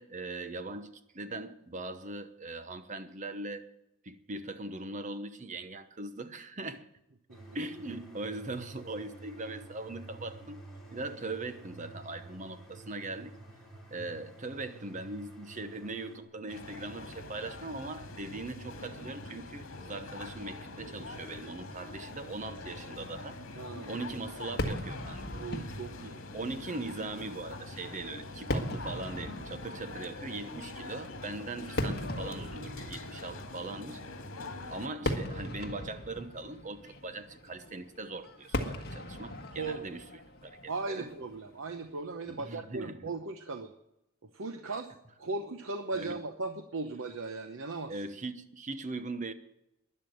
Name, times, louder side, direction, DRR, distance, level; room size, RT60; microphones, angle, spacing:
voice 1, 0.0-3.7 4.0-6.9 7.5-10.6 10.9-13.4 13.9-23.4 23.9-25.2 26.3-34.0 34.7-40.0 40.4-41.1 42.3-43.1 45.9-46.2 47.9-49.3, right 2 dB, 35° right, 1.0 m, -40 dB
sound 1, 7.3-16.2, right 2 dB, ahead, 4.2 m, -50 dB
sound 2, 16.5-34.9, left 2 dB, 70° left, 2.0 m, -44 dB
voice 2, 23.5-24.0 25.3-26.2 39.6-39.9 40.7-43.7 44.2-44.9 45.2-48.0, right 3 dB, 65° right, 0.9 m, -37 dB
Fireworks, 24.6-41.9, left 1 dB, 50° left, 1.6 m, -39 dB
12.0 x 10.5 x 7.8 m
head